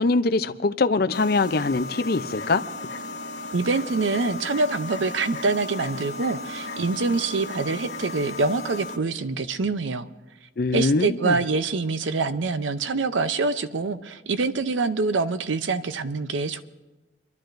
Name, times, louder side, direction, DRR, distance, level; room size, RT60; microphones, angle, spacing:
voice 1, 0.0-2.6 10.6-11.4, left 3 dB, 55° left, 0.5 m, -23 dB
sound 1, 1.1-9.0, left 2 dB, 90° left, 0.9 m, -35 dB
voice 2, 3.5-10.1 10.7-16.6, right 3 dB, 85° right, 0.6 m, -25 dB
30.0 x 11.5 x 2.6 m
head